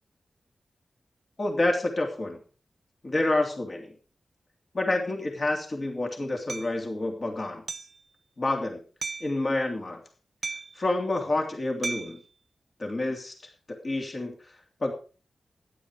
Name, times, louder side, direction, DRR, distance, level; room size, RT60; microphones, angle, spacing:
voice 1, 1.4-2.4 3.0-3.9 4.7-7.6 8.4-8.8 9.2-10.0 10.8-12.2 12.8-13.3 13.7-14.3 14.8-14.9, left 2 dB, 45° left, 2 dB, 3.0 m, -28 dB
Hammer, 6.5-6.7 7.7-8.0 9.0-9.4 10.4-10.8 11.8-12.2, right 4 dB, 55° right, 0.7 m, -35 dB
12.0 x 10.5 x 4.9 m, 0.37 s
cardioid pair, 65°, 0 cm